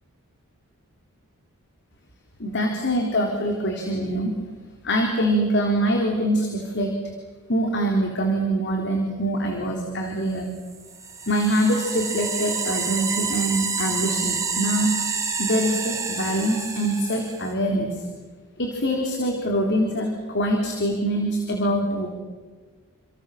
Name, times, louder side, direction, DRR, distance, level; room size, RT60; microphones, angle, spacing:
voice 1, 2.4-4.3 4.8-6.9 7.5-10.5 11.3-14.9 15.4-18.1 18.6-22.1, right 1 dB, 50° left, 2 dB, 3.8 m, -24 dB
sound 1, 10.7-17.5, right 5 dB, 15° right, 3.6 m, -28 dB
29.5 x 27.5 x 7.4 m, 1.4 s
head